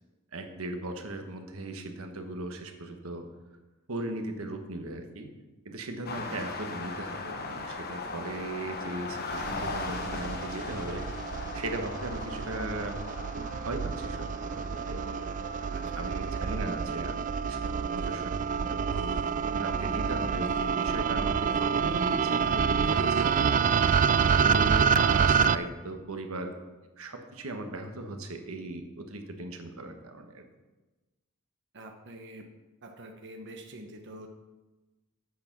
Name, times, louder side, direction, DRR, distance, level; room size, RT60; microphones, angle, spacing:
voice 1, 0.3-3.2 3.9-5.3 5.6-11.1 11.5-13.0 13.3-15.2 15.9-17.2 17.5-19.2 19.5-23.7 24.2-26.5 27.0-30.4, right 2 dB, 75° right, 5 dB, 1.2 m, -38 dB
sound 1, 6.1-16.7, left 3 dB, 45° left, 1.0 m, -39 dB
sound 2, 9.3-25.6, right 6 dB, 35° right, 0.3 m, -28 dB
voice 2, 15.7-16.1 31.7-32.4 32.8-34.3, right 1 dB, 55° right, 3 dB, 1.0 m, -46 dB
sound 3, 18.0-18.3 18.9-19.5 19.9-20.0 20.4-20.8 21.5-22.2 22.9-23.6, left 3 dB, 70° left, 0.7 m, -49 dB
8.5 x 6.8 x 6.0 m, 1.2 s
head